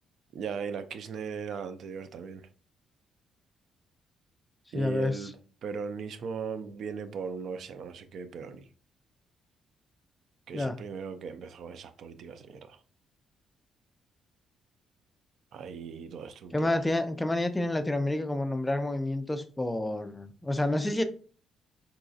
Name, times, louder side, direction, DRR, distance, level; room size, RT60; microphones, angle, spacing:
voice 1, 0.3-2.4 4.7-5.3 5.6-8.6 10.5-12.8 15.5-16.7, right 6 dB, 65° right, 0.4 m, -38 dB
voice 2, 4.7-5.3 10.5-10.8 16.5-21.0, left 1 dB, 15° left, 0.4 m, -29 dB
3.9 x 2.6 x 2.4 m
cardioid pair, 90°, 0 cm